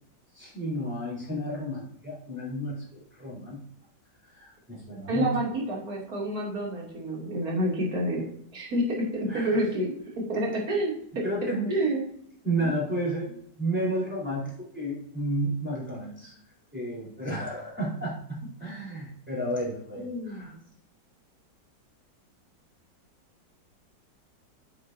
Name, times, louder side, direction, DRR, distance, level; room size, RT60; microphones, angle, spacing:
voice 1, 0.3-3.6 4.3-5.3 9.3-9.6 11.2-11.7 12.4-13.3 13.6-16.4 16.7-20.5, right 1 dB, 5° right, -6 dB, 4.1 m, -32 dB
voice 2, 5.1-11.2 11.7-12.2 12.6-12.7 20.0-20.6, right 1 dB, 55° right, -3 dB, 3.4 m, -29 dB
9.7 x 8.4 x 2.8 m, 0.67 s
omnidirectional pair, 2.0 m